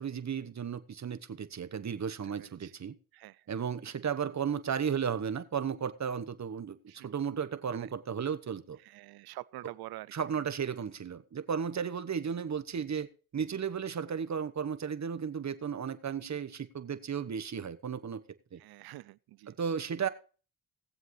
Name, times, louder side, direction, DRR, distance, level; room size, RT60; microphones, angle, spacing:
voice 1, 0.0-3.0 3.5-6.8 7.0-8.8 10.1-18.2 18.5-18.6 19.5-20.1, right 7 dB, 50° right, 1.1 m, -34 dB
voice 2, 2.4-2.7 3.1-3.5 6.9-7.1 7.7-7.9 8.8-10.1 18.6-19.6, right 17 dB, 80° right, 0.5 m, -46 dB
19.0 x 7.5 x 3.2 m
cardioid pair, 60°, 36 cm